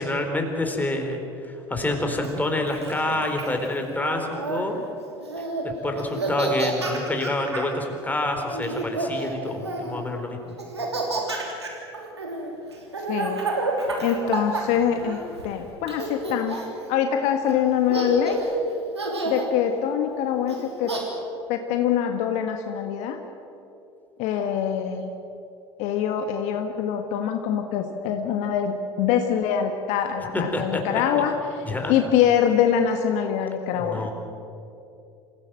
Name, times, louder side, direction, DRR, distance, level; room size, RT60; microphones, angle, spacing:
voice 1, 0.0-4.8 5.6-10.4 30.3-30.8 31.6-31.9 33.7-34.1, left 2 dB, 10° left, 3 dB, 4.5 m, -27 dB
Laughter, 2.2-4.6 5.2-5.6 6.0-7.7 8.5-10.0 10.6-15.5 15.9-16.8 17.5-17.6 17.9-18.5 18.9-19.5 20.5-21.0, right 2 dB, 90° right, 3.2 m, -29 dB
voice 2, 13.1-13.4 14.0-16.6 16.9-18.4 19.2-20.9 21.5-23.2 24.2-25.1 25.8-31.3 31.9-34.1, left 9 dB, 60° left, 5 dB, 1.6 m, -24 dB
27.0 x 17.0 x 7.8 m, 2.7 s
figure-of-eight pair, 70°, 14 cm